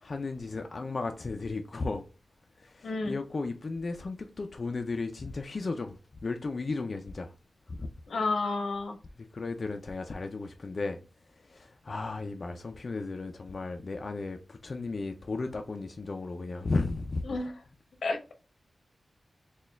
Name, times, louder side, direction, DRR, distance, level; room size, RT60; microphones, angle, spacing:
voice 1, 0.0-2.0 2.6-7.3 7.7-7.9 9.2-11.0 11.3-17.2, left 3 dB, 45° left, 0.3 m, -35 dB
voice 2, 2.8-3.2 8.1-9.0 17.3-17.5 18.0-18.3, left 3 dB, 80° left, 0.7 m, -31 dB
4.2 x 2.2 x 3.3 m
wide cardioid pair, 150°, 0 cm